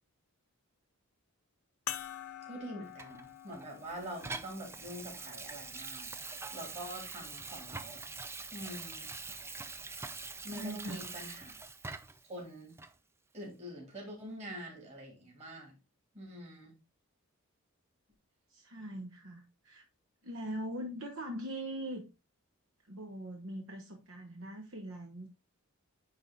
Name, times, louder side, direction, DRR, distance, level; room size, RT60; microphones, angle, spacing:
sound 1, 1.9-6.7 7.4-7.5 9.7-9.8, left 10 dB, 80° left, 0.7 m, -47 dB
voice 1, 2.4-6.1 6.5-8.1 8.5-9.1 10.4-11.5 12.2-12.7 13.3-15.7 16.1-16.7, equal, 30° right, 3.1 m, -45 dB
Water tap faucet / Sink (filling or washing), 3.0-12.3 12.8-12.9, right 4 dB, 10° right, 0.4 m, -44 dB
voice 2, 10.5-11.0 18.5-19.8 20.2-22.0 22.9-25.3, right 1 dB, 65° right, 1.1 m, -41 dB
9.7 x 3.6 x 3.8 m
head